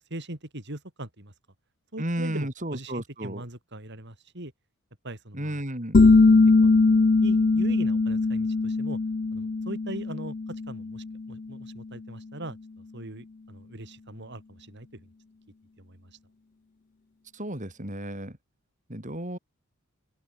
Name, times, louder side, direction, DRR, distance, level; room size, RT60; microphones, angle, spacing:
voice 1, 0.1-1.3 1.9-4.5 5.0-5.6 6.0-6.2 6.6-6.9 7.2-9.0 9.3-12.6 12.9-15.1 15.8-16.2, right 1 dB, 55° right, 4.9 m, -41 dB
voice 2, 2.0-3.4 5.3-6.0 17.3-18.4 18.9-19.4, right 1 dB, 35° right, 5.5 m, -33 dB
sound 1, 5.9-11.3, left 3 dB, 40° left, 0.5 m, -21 dB
open air
head